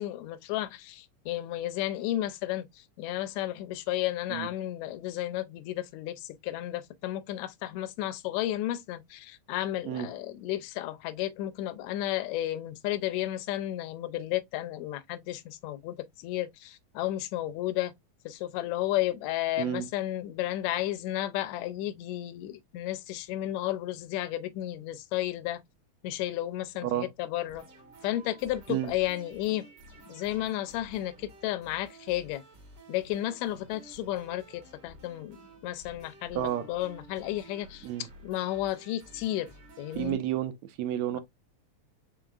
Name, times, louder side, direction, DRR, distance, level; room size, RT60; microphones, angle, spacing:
voice 1, 0.0-17.9 18.3-25.6 26.0-27.7 28.0-29.7 30.1-32.4 32.9-40.2, left 14 dB, 80° left, 1.8 m, -33 dB
voice 2, 19.6-19.9 26.8-27.1 28.7-28.9 36.3-36.6 37.8-38.1 39.9-41.2, right 11 dB, 80° right, 1.7 m, -31 dB
sound 1, 27.4-40.1, right 1 dB, 45° right, 1.6 m, -52 dB
4.8 x 4.0 x 2.4 m
omnidirectional pair, 3.5 m